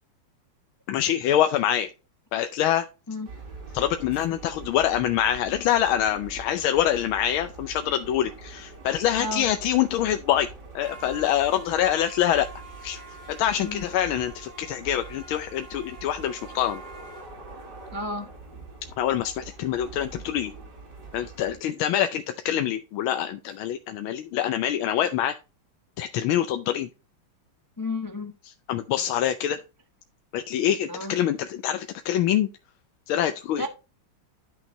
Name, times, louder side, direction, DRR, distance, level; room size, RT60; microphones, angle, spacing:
voice 1, 0.9-1.9 2.3-2.9 3.7-10.5 10.7-12.5 12.8-13.0 13.3-16.8 19.0-20.5 21.1-25.3 26.0-26.9 28.7-29.6 30.3-32.5 33.1-33.7, left 11 dB, 90° left, 1.5 m, -25 dB
sound 1, 3.3-21.6, right 3 dB, 55° right, 3.0 m, -43 dB
voice 2, 17.9-18.3 27.8-28.3 30.9-31.2 33.6-33.7, left 2 dB, 20° left, 0.6 m, -32 dB
11.0 x 6.1 x 2.8 m
omnidirectional pair, 2.2 m